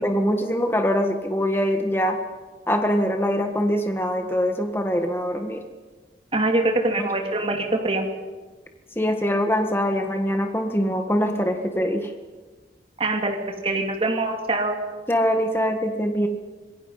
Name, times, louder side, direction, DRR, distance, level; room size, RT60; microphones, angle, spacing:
voice 1, 0.0-2.2 2.7-5.6 7.0-7.1 8.9-12.1 15.1-16.3, equal, 15° left, 4 dB, 1.6 m, -23 dB
voice 2, 6.3-8.0 13.0-13.4 13.6-14.8, right 2 dB, 30° right, 2 dB, 2.8 m, -23 dB
26.0 x 22.0 x 5.8 m, 1.3 s
head